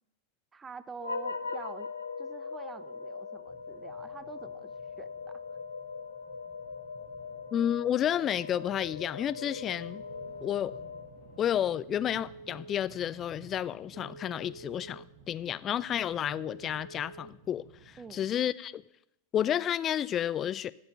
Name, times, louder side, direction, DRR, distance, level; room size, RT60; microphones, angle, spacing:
voice 1, 0.5-1.9 2.2-4.7 5.0-5.4 18.0-18.4, right 5 dB, 15° right, 0.6 m, -47 dB
sound 1, 1.0-11.5, left 4 dB, 75° left, 0.7 m, -40 dB
sound 2, 3.5-18.3, right 5 dB, 40° right, 1.5 m, -56 dB
voice 2, 7.5-10.0 10.4-10.7 11.4-18.8 19.3-20.7, left 10 dB, 30° left, 0.4 m, -31 dB
Telephone, 9.4-10.5 11.7-12.8 13.9-15.0 16.2-17.3, right 4 dB, 60° right, 0.8 m, -49 dB
12.5 x 6.9 x 6.9 m
figure-of-eight pair, 90°, 0 cm